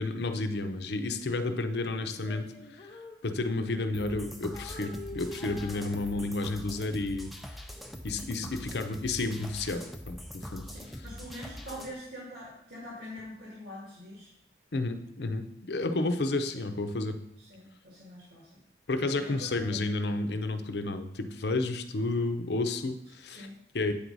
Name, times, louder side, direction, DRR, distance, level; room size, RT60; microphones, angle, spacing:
voice 1, 0.0-2.5 3.2-7.3 8.0-10.6 14.7-17.2 18.9-23.5 23.7-23.9, left 2 dB, 75° left, 7 dB, 0.6 m, -31 dB
Female singing, 2.0-4.2 4.5-6.6, left 2 dB, 30° left, 0.7 m, -47 dB
sound 1, 3.9-11.9, equal, ahead, 0.4 m, -43 dB
voice 2, 10.6-14.3 16.3-16.7 17.4-18.6 19.2-19.8 22.0-22.1 23.3-23.6, equal, 70° right, -6 dB, 1.8 m, -45 dB
8.6 x 4.7 x 3.9 m, 0.78 s
head